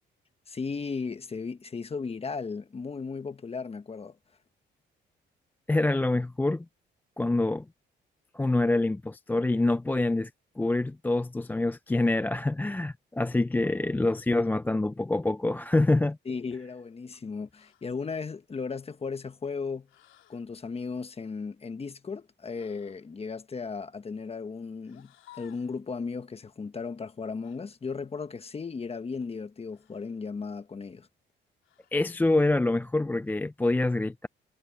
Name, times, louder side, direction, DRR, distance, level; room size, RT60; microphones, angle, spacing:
voice 1, 0.5-4.2 16.2-19.9 20.3-31.1, left 5 dB, 30° left, 1.3 m, -36 dB
voice 2, 5.7-6.6 7.2-7.6 8.3-10.3 10.6-16.2 31.9-34.3, left 2 dB, 10° left, 0.4 m, -26 dB
sound 1, 17.5-17.9 19.9-20.4 22.5-23.0 24.8-25.8 27.4-27.6 29.7-30.2 31.6-32.1, left 14 dB, 80° left, 3.2 m, -57 dB
cardioid pair, 90°, 20 cm